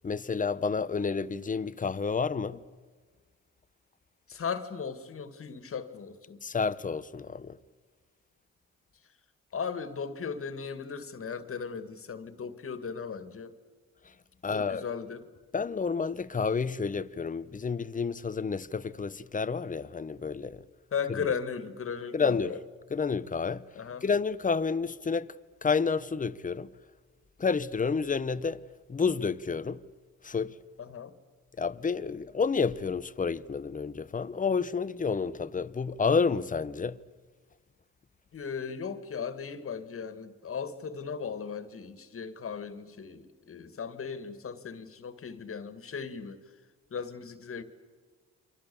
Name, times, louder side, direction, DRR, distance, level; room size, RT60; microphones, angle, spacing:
voice 1, 0.0-2.6 6.4-7.6 14.4-14.8 15.5-20.6 21.1-21.3 22.1-22.5 22.9-23.6 24.0-25.3 25.6-26.7 27.4-28.6 28.9-29.8 30.2-30.6 31.6-37.0, left 5 dB, 25° left, 0.9 m, -30 dB
voice 2, 4.3-6.4 9.5-13.5 14.5-15.2 20.9-22.6 23.8-24.0 30.8-31.1 38.3-46.4 46.9-47.6, left 6 dB, 45° left, 2.1 m, -37 dB
29.5 x 25.0 x 7.1 m
cardioid pair, 90°, 30 cm